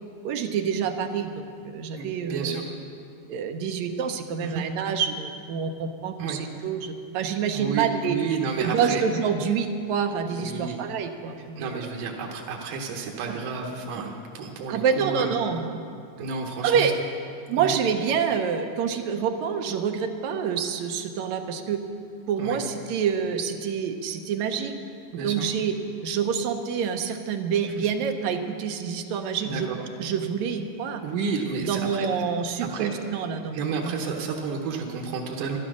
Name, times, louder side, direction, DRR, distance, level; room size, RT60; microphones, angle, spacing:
voice 1, 0.2-1.3 1.6-2.7 3.3-8.2 8.6-11.8 13.3-13.4 14.7-15.8 16.6-16.9 17.5-21.8 22.3-24.7 25.2-25.7 26.0-29.7 30.0-31.0 31.6-34.0, right 7 dB, 75° right, 6 dB, 1.9 m, -27 dB
voice 2, 2.0-2.6 4.4-4.6 6.2-6.4 7.5-9.0 10.4-10.8 11.6-15.3 16.2-16.9 17.6-17.7 22.4-22.6 25.1-25.4 29.4-29.8 31.0-32.1 32.6-32.9 33.5-35.6, right 5 dB, 90° right, 0 dB, 2.6 m, -31 dB
13.0 x 12.0 x 6.2 m, 2.4 s
omnidirectional pair, 3.6 m